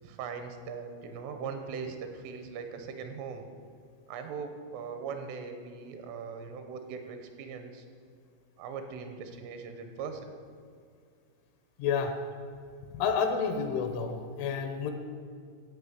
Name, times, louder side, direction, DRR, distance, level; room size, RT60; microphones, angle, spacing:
voice 1, 0.0-3.5 4.1-7.9 8.6-10.4, right 5 dB, 80° right, 6 dB, 3.3 m, -40 dB
voice 2, 11.8-12.1 12.9-14.9, left 6 dB, 80° left, 6 dB, 3.1 m, -29 dB
15.5 x 5.5 x 7.9 m, 2.2 s
omnidirectional pair, 5.9 m